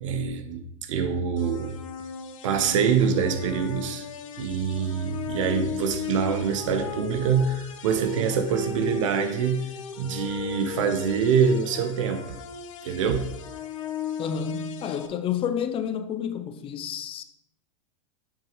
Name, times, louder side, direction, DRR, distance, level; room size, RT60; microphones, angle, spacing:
voice 1, 0.0-1.7 2.4-4.0 4.4-9.7 10.0-12.3 12.8-13.3, right 6 dB, 70° right, 1.0 m, -25 dB
sound 1, 1.4-15.1, left 7 dB, 70° left, 0.8 m, -37 dB
voice 2, 14.2-17.2, left 8 dB, 30° left, 0.6 m, -30 dB
8.3 x 6.0 x 3.1 m
hypercardioid pair, 100°, 17 cm